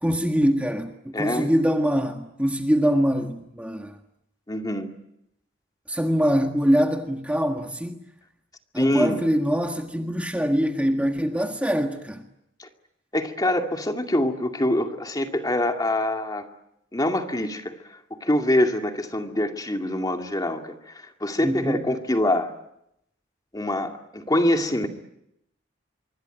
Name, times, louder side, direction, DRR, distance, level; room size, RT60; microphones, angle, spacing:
voice 1, 0.0-4.0 5.9-8.0 8.7-12.2 21.4-21.8, equal, 5° right, 1.6 m, -23 dB
voice 2, 1.1-1.5 4.5-4.9 8.8-9.2 12.6-12.7 13.1-16.5 16.9-22.5 23.5-24.9, left 1 dB, 20° left, 2.3 m, -25 dB
26.0 x 23.5 x 9.1 m
head